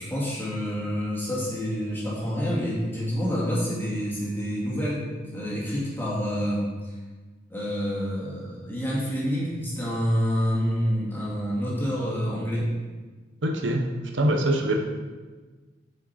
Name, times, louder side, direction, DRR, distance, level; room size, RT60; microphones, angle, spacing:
voice 1, 0.0-6.7 7.5-12.7, equal, 10° left, -7 dB, 2.3 m, -28 dB
voice 2, 13.4-13.9 14.1-14.9, right 1 dB, 80° right, 3 dB, 1.0 m, -23 dB
9.4 x 5.3 x 4.3 m, 1.3 s
head